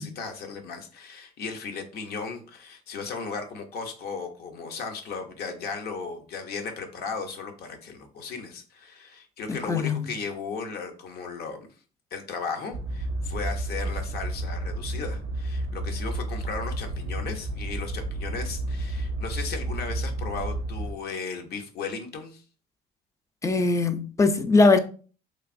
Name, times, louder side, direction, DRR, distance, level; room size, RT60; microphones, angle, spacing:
voice 1, 0.0-11.7 12.1-22.4, left 5 dB, 65° left, 0.7 m, -36 dB
voice 2, 9.5-10.0 23.4-24.8, left 3 dB, 20° left, 0.3 m, -21 dB
sound 1, 12.7-20.9, right 1 dB, 85° right, 0.4 m, -31 dB
3.1 x 2.4 x 2.5 m
cardioid pair, 110°, 17 cm